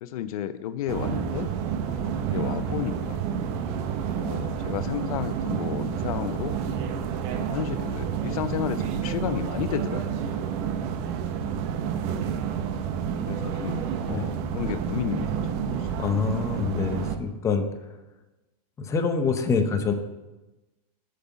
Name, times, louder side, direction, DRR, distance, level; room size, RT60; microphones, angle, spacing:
voice 1, 0.0-1.5 1.9-3.2 4.1-6.9 7.3-10.5 13.3-15.9, left 10 dB, 65° left, 12 dB, 0.6 m, -33 dB
sound 1, 0.9-17.2, right 7 dB, 40° right, 0.9 m, -29 dB
voice 2, 16.0-17.7 18.8-19.9, left 5 dB, 15° left, 6 dB, 0.7 m, -25 dB
8.4 x 5.7 x 6.9 m, 1.1 s
supercardioid pair, 150°, 20 cm